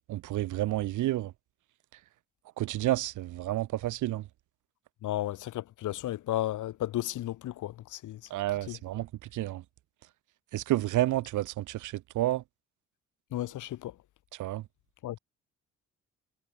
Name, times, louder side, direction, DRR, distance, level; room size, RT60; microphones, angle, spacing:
voice 1, 0.1-1.3 2.6-4.2 8.3-9.6 10.5-12.4 14.4-14.6, right 15 dB, 80° right, 1.2 m, -30 dB
voice 2, 5.0-8.2 8.7-8.8 13.3-13.9 15.0-15.2, left 14 dB, 80° left, 2.3 m, -33 dB
cardioid pair, 90°, 30 cm